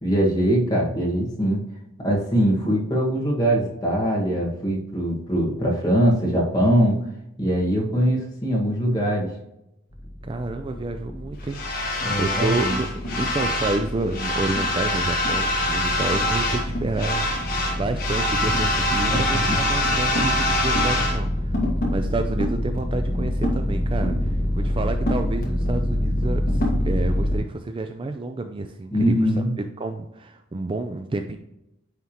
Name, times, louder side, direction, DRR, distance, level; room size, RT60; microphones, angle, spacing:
voice 1, 0.0-1.6 2.0-7.0 7.4-9.3 12.0-12.8 19.1-19.2 19.5-19.6 28.9-29.5, equal, 20° left, -3 dB, 1.6 m, -22 dB
sound 1, 9.9-27.4, left 1 dB, 45° left, 1.6 m, -24 dB
voice 2, 10.2-11.6 12.2-21.5 21.9-31.4, right 2 dB, 25° right, 6 dB, 0.3 m, -29 dB
9.2 x 3.5 x 2.9 m, 0.85 s
head